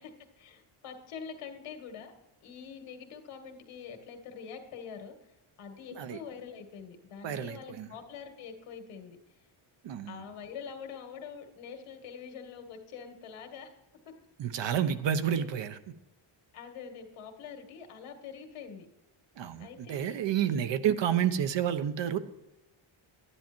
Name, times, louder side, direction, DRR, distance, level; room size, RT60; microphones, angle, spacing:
voice 1, 0.0-2.1 2.4-5.1 5.6-9.2 10.1-13.7 15.3-15.5 16.5-18.9 19.6-20.7, left 6 dB, 80° left, 2.1 m, -45 dB
voice 2, 7.2-7.9 9.8-10.2 14.4-15.8 19.4-22.2, right 9 dB, 60° right, 0.9 m, -30 dB
11.5 x 10.0 x 4.5 m
cardioid pair, 160°, 50 cm